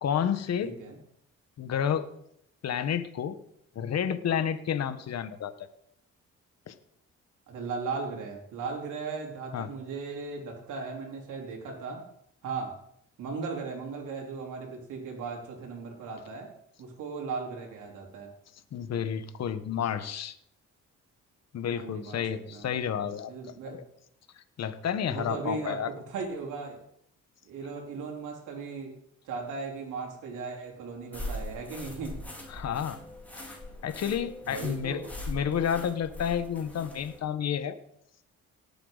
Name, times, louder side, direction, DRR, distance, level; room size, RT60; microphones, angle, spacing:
voice 1, 0.0-0.7 1.6-2.1 2.6-3.4 3.7-5.5 6.7-6.8 9.5-9.7 18.7-20.3 21.5-23.3 23.6-23.8 24.6-25.9 32.5-33.0 33.8-37.8, left 8 dB, 60° left, 11 dB, 1.2 m, -30 dB
voice 2, 0.6-1.0 7.5-12.0 12.4-12.7 13.2-16.5 16.8-18.3 21.7-22.7 23.3-23.8 25.1-26.8 27.5-28.9 29.2-32.2 34.4-35.1, right 4 dB, 80° right, 0 dB, 3.9 m, -37 dB
sound 1, 31.1-37.2, left 1 dB, 5° left, 4.7 m, -41 dB
18.5 x 8.6 x 4.0 m, 0.71 s
cardioid pair, 90°, 30 cm